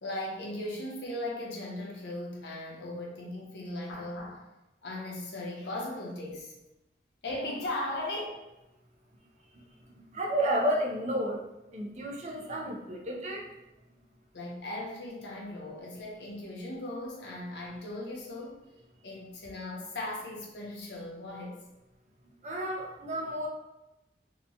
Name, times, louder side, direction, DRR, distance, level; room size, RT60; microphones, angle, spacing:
voice 1, 0.0-4.4 4.8-6.5 7.2-8.4 14.3-18.6 19.0-21.6, left 1 dB, 75° left, -2 dB, 0.7 m, -38 dB
voice 2, 9.9-11.4 11.7-13.5 22.4-23.5, right 1 dB, 40° right, 0 dB, 0.4 m, -31 dB
2.8 x 2.2 x 2.7 m, 0.95 s
head